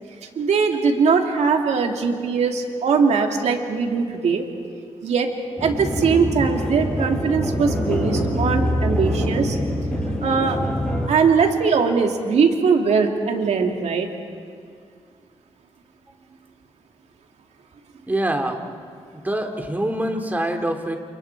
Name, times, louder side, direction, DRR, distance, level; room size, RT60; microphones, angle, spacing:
voice 1, 0.4-4.4 5.0-5.3 5.6-9.6 10.2-10.6 11.1-14.1, right 5 dB, 75° right, 3 dB, 2.3 m, -20 dB
sound 1, 5.6-11.1, equal, 10° left, 5.1 m, -24 dB
voice 2, 18.1-18.7 19.1-21.0, right 1 dB, 15° right, 4 dB, 2.5 m, -25 dB
29.5 x 27.5 x 4.6 m, 2.2 s
cardioid pair, 85°, 11 cm